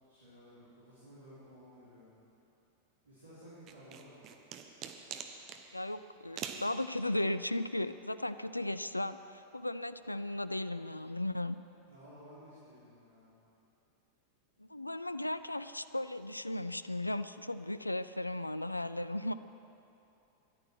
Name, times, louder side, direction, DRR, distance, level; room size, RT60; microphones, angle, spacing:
voice 1, 0.1-2.1 3.0-4.1 11.9-13.4, equal, 80° right, -11 dB, 4.2 m, -55 dB
sound 1, 3.7-5.6 6.4-6.7, right 8 dB, 35° right, 1.1 m, -43 dB
voice 2, 5.7-11.6 14.6-19.3, left 1 dB, 85° left, 13 dB, 0.3 m, -36 dB
13.5 x 11.5 x 6.2 m, 2.8 s
figure-of-eight pair, 90°, 0 cm